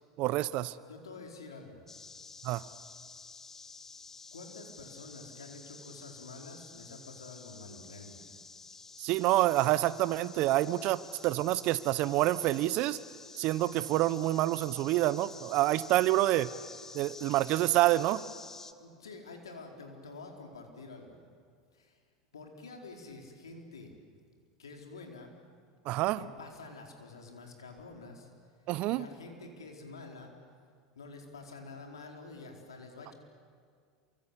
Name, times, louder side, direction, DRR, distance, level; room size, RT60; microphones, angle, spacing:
voice 1, 0.2-0.7 2.4-2.6 9.0-13.0 13.3-16.5 16.9-18.2 25.9-26.2 28.7-29.1, right 16 dB, 55° right, 16 dB, 1.0 m, -27 dB
voice 2, 0.8-1.9 4.3-8.2 18.8-21.3 21.7-22.0 22.3-24.0 24.6-25.3 26.1-28.3 28.9-30.3 31.0-33.1, left 3 dB, 85° left, 2 dB, 4.5 m, -48 dB
sound 1, 1.9-18.7, left 4 dB, 20° left, 1.5 m, -50 dB
28.0 x 25.0 x 8.5 m, 2.1 s
hypercardioid pair, 90°, 2 cm